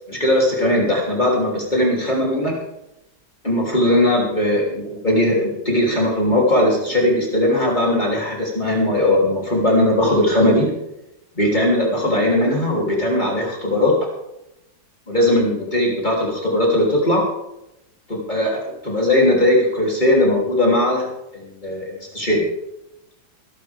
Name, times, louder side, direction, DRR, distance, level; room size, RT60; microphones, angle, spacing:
voice 1, 0.1-2.5 3.4-10.7 11.4-13.9 15.1-17.2 18.1-21.1 21.3-22.4, left 1 dB, 25° left, -3 dB, 3.4 m, -19 dB
21.0 x 11.5 x 3.6 m, 0.89 s
omnidirectional pair, 2.0 m